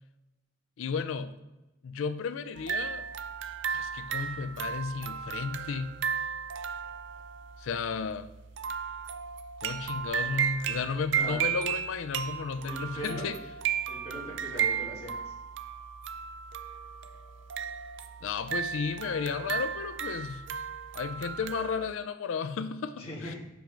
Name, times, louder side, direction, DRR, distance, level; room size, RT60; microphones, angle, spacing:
voice 1, 0.8-1.3 1.8-3.0 3.7-5.9 7.6-8.3 9.6-13.4 18.2-20.4 20.9-23.4, left 5 dB, 75° left, 12 dB, 0.4 m, -33 dB
sound 1, 2.6-21.9, right 7 dB, 65° right, 0.4 m, -34 dB
voice 2, 11.1-11.6 12.6-13.3 13.9-15.3 23.0-23.4, equal, 30° left, -4 dB, 1.8 m, -40 dB
5.8 x 5.1 x 5.1 m, 1.0 s
head